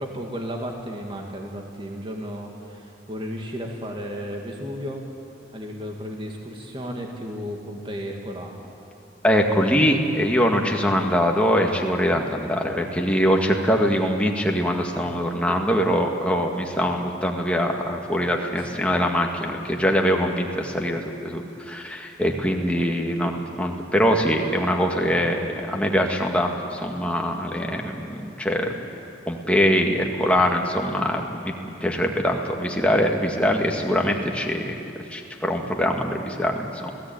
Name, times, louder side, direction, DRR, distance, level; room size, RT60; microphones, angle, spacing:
voice 1, 0.0-5.0 5.5-8.6 10.4-10.6 12.4-12.5 18.5-18.7, equal, 30° right, 1 dB, 2.2 m, -34 dB
voice 2, 9.2-28.7 29.3-31.5 31.8-34.7 35.1-36.9, equal, 5° left, 1 dB, 1.9 m, -23 dB
28.5 x 17.0 x 9.0 m, 2.7 s
head